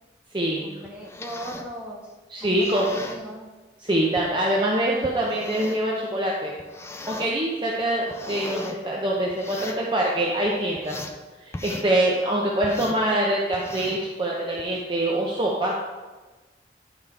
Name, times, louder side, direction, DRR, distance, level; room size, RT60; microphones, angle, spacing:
voice 1, 0.6-2.1 2.4-3.6, right 1 dB, 5° right, -4 dB, 1.4 m, -38 dB
sound 1, 0.8-1.7 2.4-3.2 4.1-4.3 5.0-5.9 6.6-7.3 7.8-8.8 9.3-9.8 10.4-11.2 11.5-11.9 12.6-13.0 13.5-14.1 14.6-14.8, left 2 dB, 15° left, 0.4 m, -38 dB
voice 2, 2.3-2.9 3.8-6.5 7.1-11.0 11.4-15.8, right 1 dB, 25° right, -3 dB, 0.8 m, -24 dB
11.0 x 5.1 x 3.6 m, 1.2 s
head